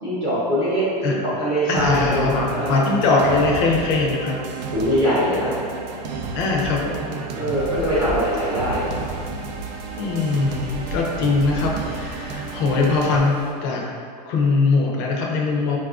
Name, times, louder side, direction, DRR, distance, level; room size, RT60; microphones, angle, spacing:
voice 1, 0.0-2.8 4.7-5.5 7.3-8.9, equal, 15° right, -12 dB, 0.6 m, -22 dB
voice 2, 1.7-4.4 6.3-7.1 9.9-13.9 14.2-15.8, left 3 dB, 40° left, -1 dB, 0.4 m, -21 dB
sound 1, 1.8-13.2, right 4 dB, 85° right, 0.4 m, -32 dB
sound 2, 7.5-13.5, equal, 65° right, 0.8 m, -39 dB
4.2 x 2.3 x 2.4 m, 2.3 s
supercardioid pair, 165°, 21 cm